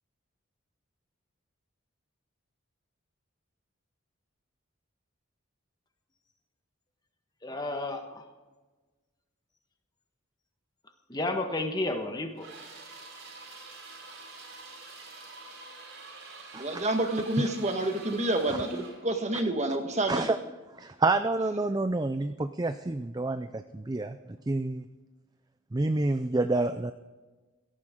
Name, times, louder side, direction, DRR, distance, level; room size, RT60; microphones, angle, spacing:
voice 1, 7.4-8.2 11.1-12.5, left 2 dB, 20° left, 5 dB, 1.4 m, -32 dB
sound 1, 12.4-19.1, right 3 dB, 75° right, 5.9 m, -46 dB
voice 2, 16.5-20.3, right 1 dB, 35° right, 5 dB, 1.5 m, -29 dB
voice 3, 20.8-24.8 25.7-26.9, right 2 dB, 20° right, 10 dB, 0.4 m, -28 dB
17.5 x 14.0 x 3.7 m, 1.3 s
head